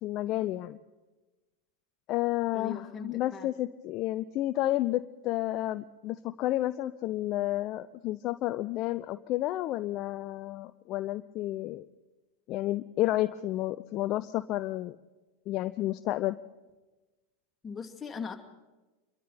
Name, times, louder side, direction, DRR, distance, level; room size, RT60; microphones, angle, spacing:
voice 1, 0.0-0.8 2.1-11.9 12.5-15.0 15.5-16.4, left 15 dB, 45° left, 12 dB, 0.6 m, -31 dB
voice 2, 2.5-3.5 17.6-18.4, left 5 dB, 20° left, 3 dB, 2.5 m, -39 dB
27.5 x 22.5 x 4.2 m, 1.2 s
hypercardioid pair, 90°, 0 cm